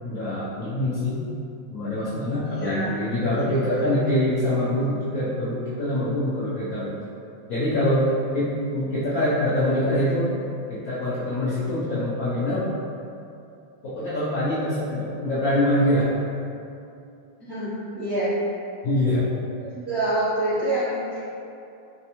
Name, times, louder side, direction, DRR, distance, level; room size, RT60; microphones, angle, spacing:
voice 1, 0.0-1.2 1.7-7.0 7.5-8.1 8.3-10.3 10.7-12.7 13.8-16.1 18.8-19.3, left 1 dB, 65° left, -11 dB, 0.8 m, -24 dB
voice 2, 2.5-2.9 17.4-18.3 19.7-21.2, right 1 dB, 55° right, -12 dB, 0.7 m, -26 dB
3.4 x 3.2 x 2.9 m, 2.6 s
omnidirectional pair, 2.2 m